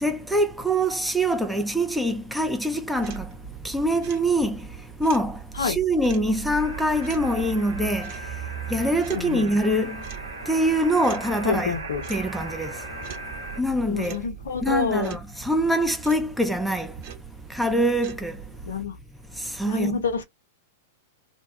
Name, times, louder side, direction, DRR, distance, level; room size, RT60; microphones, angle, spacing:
voice 1, 0.0-3.4 3.6-4.7 5.0-8.3 8.7-10.0 10.5-11.8 12.1-12.8 13.6-14.2 14.6-17.0 17.5-18.4 19.4-20.2, right 1 dB, ahead, 0.4 m, -24 dB
sound 1, 2.9-18.7, right 12 dB, 50° right, 1.0 m, -40 dB
sound 2, 6.5-13.6, right 1 dB, 85° right, 0.9 m, -38 dB
voice 2, 9.1-9.5 11.4-12.0 13.9-15.2 18.7-19.0 19.7-20.2, left 5 dB, 70° left, 0.6 m, -27 dB
2.6 x 2.2 x 2.2 m
figure-of-eight pair, 100°, 0 cm